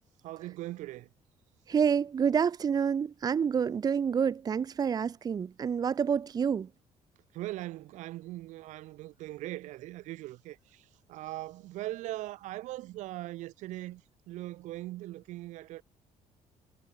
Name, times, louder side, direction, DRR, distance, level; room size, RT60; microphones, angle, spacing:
voice 1, 0.2-1.1 7.3-14.0 14.3-15.8, right 17 dB, 85° right, 7.0 m, -40 dB
voice 2, 1.7-6.7, right 7 dB, 30° right, 1.7 m, -28 dB
cardioid pair, 150°, 12 cm